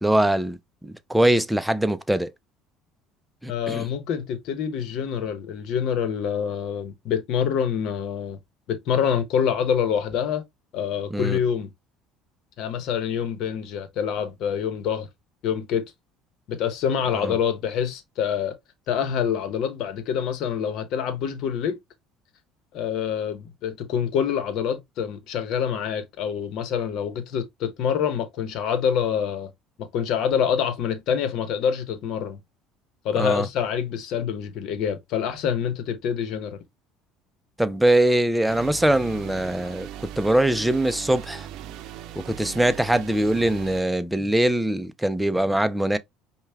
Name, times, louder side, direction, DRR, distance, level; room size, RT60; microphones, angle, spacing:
voice 1, 0.0-2.3 3.4-3.9 11.1-11.4 17.1-17.3 33.1-33.5 37.6-41.5 42.3-46.0, right 1 dB, 5° right, 0.6 m, -22 dB
voice 2, 3.5-8.4 8.7-10.4 10.7-11.7 12.6-15.1 15.4-15.8 16.5-18.6 18.9-21.8 22.7-29.5 29.8-32.4 33.0-36.6, left 8 dB, 65° left, 1.0 m, -26 dB
sound 1, 38.5-43.8, right 11 dB, 65° right, 0.6 m, -39 dB
5.4 x 2.3 x 3.4 m
hypercardioid pair, 75°, 0 cm